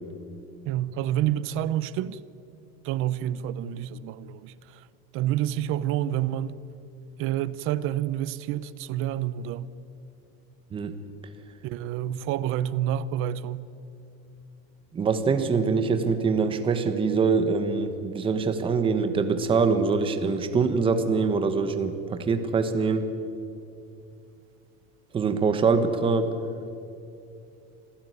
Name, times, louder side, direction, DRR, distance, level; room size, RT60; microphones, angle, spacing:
voice 1, 0.7-2.2 2.8-4.9 5.1-6.6 7.2-9.7 11.6-13.7, right 11 dB, 45° right, 0.8 m, -28 dB
voice 2, 14.9-23.0 25.1-26.3, right 5 dB, 15° right, 1.2 m, -24 dB
26.0 x 16.0 x 9.5 m
cardioid pair, 175°, 30 cm